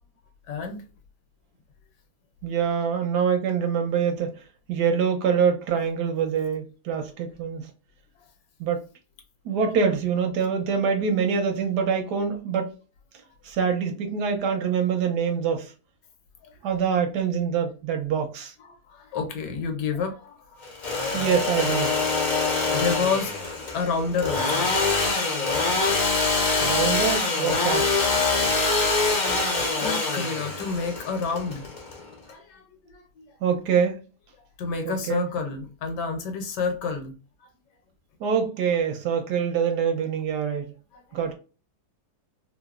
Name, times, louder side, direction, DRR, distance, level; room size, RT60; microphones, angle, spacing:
voice 1, 0.5-0.8 16.4-16.6 18.6-21.2 22.5-25.0 29.8-31.7 32.3-33.4 34.6-37.2 40.9-41.2, left 5 dB, 80° left, 1.3 m, -30 dB
voice 2, 2.4-4.3 4.7-7.7 8.6-8.8 9.4-12.7 13.4-15.7 16.6-18.5 21.1-22.0 26.6-27.9 33.4-34.0 34.8-35.3 38.2-40.7 41.1-41.3, right 6 dB, 80° right, 1.2 m, -25 dB
Engine / Sawing, 20.6-32.3, left 3 dB, 65° left, 0.4 m, -24 dB
3.1 x 2.0 x 2.3 m
omnidirectional pair, 1.8 m